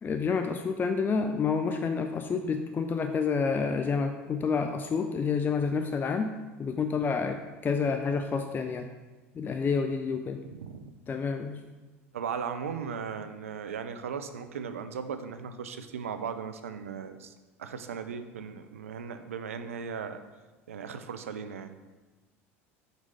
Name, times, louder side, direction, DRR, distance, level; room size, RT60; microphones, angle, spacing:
voice 1, 0.0-8.9 9.3-10.4 11.1-11.6, left 5 dB, 25° left, 6 dB, 0.4 m, -29 dB
voice 2, 10.5-10.9 12.1-17.3 17.6-20.2 20.7-21.8, right 6 dB, 85° right, 9 dB, 0.4 m, -37 dB
4.5 x 4.0 x 5.3 m, 1.2 s
hypercardioid pair, 75°, 7 cm